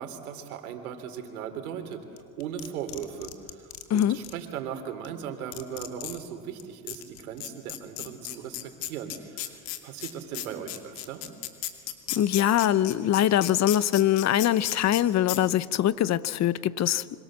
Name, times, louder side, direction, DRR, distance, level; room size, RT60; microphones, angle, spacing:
voice 1, 0.0-2.0 2.4-11.3, right 8 dB, 90° right, 3.4 m, -38 dB
sound 1, 2.2-4.3 5.0-5.1 5.5-6.2 6.6-6.7 6.9-15.0 15.3-15.4, left 15 dB, 70° left, 2.6 m, -34 dB
voice 2, 12.1-17.0, left 11 dB, 40° left, 1.0 m, -23 dB
26.5 x 25.0 x 7.5 m
supercardioid pair, 100°, 42 cm